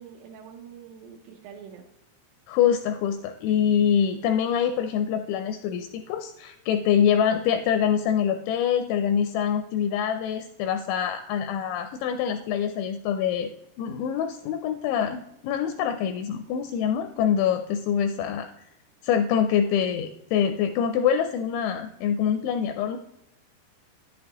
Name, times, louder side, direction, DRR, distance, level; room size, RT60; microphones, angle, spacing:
voice 1, 0.0-1.8, right 7 dB, 80° right, 0 dB, 3.3 m, -45 dB
voice 2, 2.5-13.5 13.8-18.5 19.0-23.0, left 8 dB, 85° left, 7 dB, 2.7 m, -25 dB
10.5 x 8.6 x 2.9 m, 0.81 s
omnidirectional pair, 5.7 m